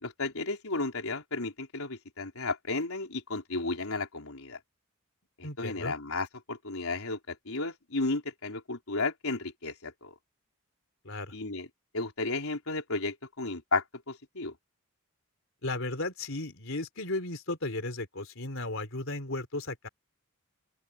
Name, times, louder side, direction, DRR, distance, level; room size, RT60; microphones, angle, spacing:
voice 1, 0.0-4.6 5.4-10.1 11.3-11.7 11.9-14.5, left 3 dB, 90° left, 4.2 m, -33 dB
voice 2, 5.4-5.9 11.0-11.3 15.6-19.9, left 2 dB, 65° left, 3.9 m, -35 dB
open air
head